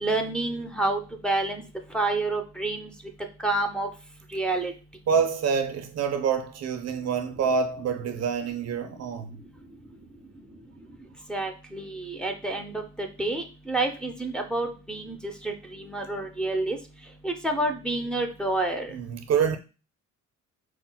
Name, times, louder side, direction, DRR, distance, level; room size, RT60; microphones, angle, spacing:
voice 1, 0.0-1.6 1.9-2.9 3.4-3.9 4.3-4.7 11.3-16.8 17.2-18.9, right 2 dB, 5° left, 0.6 m, -28 dB
voice 2, 5.1-9.3 18.9-19.6, right 6 dB, 60° right, 0.5 m, -26 dB
5.5 x 2.1 x 2.2 m
cardioid pair, 90°, 30 cm